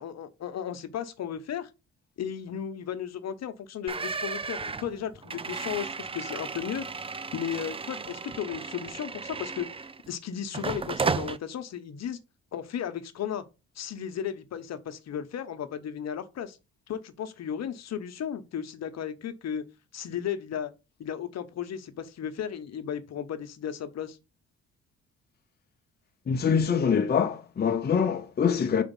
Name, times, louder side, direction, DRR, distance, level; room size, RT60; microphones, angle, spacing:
voice 1, 0.0-1.7 2.2-9.7 10.1-12.2 12.5-13.4 13.8-16.6 16.9-19.6 19.9-20.7 21.0-24.2, left 9 dB, 60° left, 0.9 m, -35 dB
sound 1, 3.9-10.1 10.5-11.4, right 4 dB, 20° right, 0.4 m, -34 dB
voice 2, 26.3-28.8, left 6 dB, 35° left, 0.7 m, -24 dB
5.0 x 4.0 x 5.3 m
cardioid pair, 90°, 30 cm